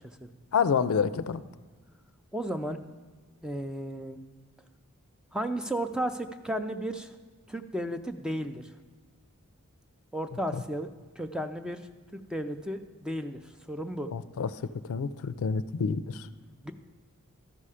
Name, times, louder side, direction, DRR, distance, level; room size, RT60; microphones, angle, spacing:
voice 1, 0.5-1.4 14.1-14.5 14.9-16.3, left 6 dB, 70° left, 13 dB, 0.4 m, -28 dB
voice 2, 2.3-2.8 3.4-4.2 5.3-7.1 7.5-8.7 10.1-10.9 11.2-11.9 12.1-13.4 13.7-14.1 16.6-16.7, right 1 dB, 5° right, 7 dB, 0.4 m, -33 dB
13.0 x 5.6 x 4.9 m, 1.4 s
head